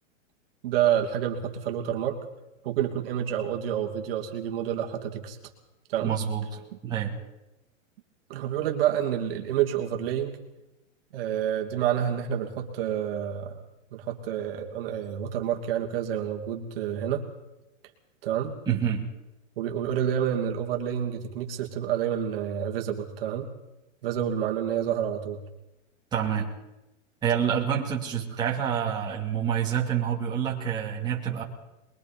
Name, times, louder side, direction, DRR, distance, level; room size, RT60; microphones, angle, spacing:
voice 1, 0.6-2.2 2.6-5.4 5.9-6.2 8.3-10.4 11.1-13.6 13.9-17.3 18.2-18.5 19.6-23.5 24.0-25.4, right 10 dB, 45° right, 2 dB, 2.6 m, -28 dB
voice 2, 6.0-7.1 18.7-19.0 26.1-26.5 27.2-31.4, right 8 dB, 10° right, -5 dB, 2.6 m, -27 dB
22.5 x 22.5 x 5.3 m, 0.94 s
supercardioid pair, 175°, 39 cm